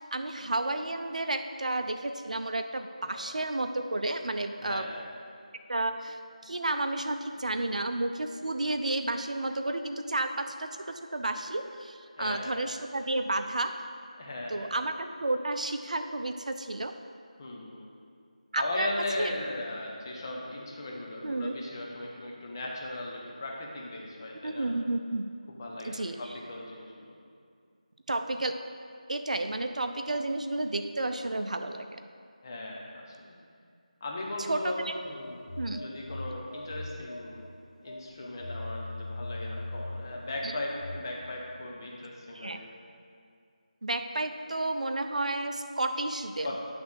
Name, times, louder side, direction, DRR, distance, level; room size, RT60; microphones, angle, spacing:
voice 1, 0.0-4.8 5.7-13.7 14.5-16.9 18.5-18.9 19.2-19.3 21.2-21.5 24.4-25.3 25.8-26.3 28.1-28.5 29.1-32.0 34.5-34.9 35.6-35.8 40.4-40.5 42.3-42.6 43.8-46.6, right 2 dB, 70° right, 7 dB, 0.5 m, -31 dB
voice 2, 4.6-5.1 12.2-12.6 14.2-14.7 17.4-17.9 18.6-24.7 25.5-27.2 32.4-33.4 34.0-37.5 37.8-42.7 46.4-46.6, left 1 dB, 30° left, -2 dB, 0.9 m, -38 dB
Telephone, 35.2-37.5 37.9-41.0, left 2 dB, 75° left, 0.7 m, -40 dB
9.2 x 3.4 x 6.2 m, 2.3 s
figure-of-eight pair, 170°, 4 cm